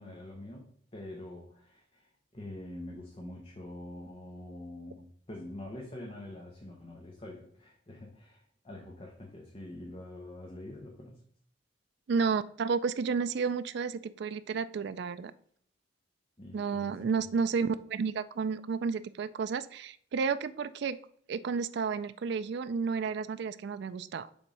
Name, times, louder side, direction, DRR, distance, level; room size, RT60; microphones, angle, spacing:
voice 1, 0.0-11.2 16.4-17.3, left 1 dB, 30° left, -1 dB, 1.1 m, -45 dB
voice 2, 12.1-15.3 16.5-21.0 21.3-24.3, right 5 dB, 60° right, 13 dB, 0.3 m, -31 dB
7.1 x 3.5 x 5.3 m, 0.63 s
head